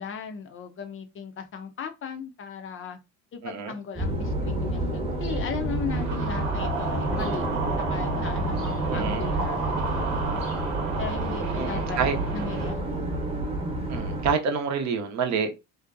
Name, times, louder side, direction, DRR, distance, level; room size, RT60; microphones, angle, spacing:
voice 1, 0.0-3.0 3.3-7.4 7.8-10.4 11.0-12.0 12.3-13.0, left 6 dB, 35° left, 0.5 m, -37 dB
voice 2, 3.4-3.7 8.9-9.3 11.6-12.1 13.9-15.5, right 6 dB, 50° right, 0.6 m, -27 dB
sound 1, 4.0-14.3, right 1 dB, 15° right, 0.9 m, -29 dB
sound 2, 5.9-12.7, right 4 dB, 80° right, 0.9 m, -32 dB
2.6 x 2.1 x 2.4 m
supercardioid pair, 80°, 36 cm